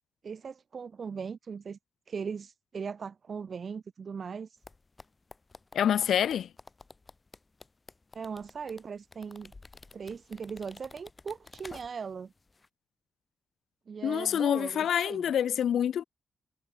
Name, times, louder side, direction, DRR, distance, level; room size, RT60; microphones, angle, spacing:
voice 1, 0.2-1.8 2.1-4.5 8.2-9.5 9.9-12.3 13.9-15.2, right 6 dB, 40° right, 1.7 m, -39 dB
sound 1, 4.6-12.2 12.5-12.7, left 3 dB, 20° left, 1.8 m, -51 dB
voice 2, 5.7-6.5 14.0-16.0, left 9 dB, 75° left, 0.4 m, -27 dB
wide cardioid pair, 165°, 0 cm